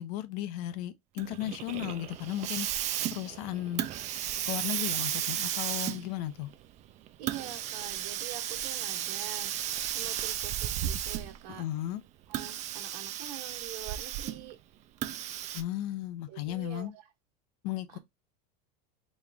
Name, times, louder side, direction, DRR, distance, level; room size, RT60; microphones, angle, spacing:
voice 1, 0.0-2.7 3.1-3.9 4.5-6.5 11.6-12.0 15.5-16.9 17.6-18.0, left 13 dB, 60° left, 0.7 m, -35 dB
Hiss, 1.2-11.5 12.2-14.5 15.0-15.6, right 11 dB, 35° right, 0.4 m, -34 dB
voice 2, 7.2-11.6 12.3-14.6 16.3-17.0 17.9-18.0, right 12 dB, 75° right, 1.3 m, -45 dB
3.8 x 3.1 x 3.5 m
supercardioid pair, 140°, 21 cm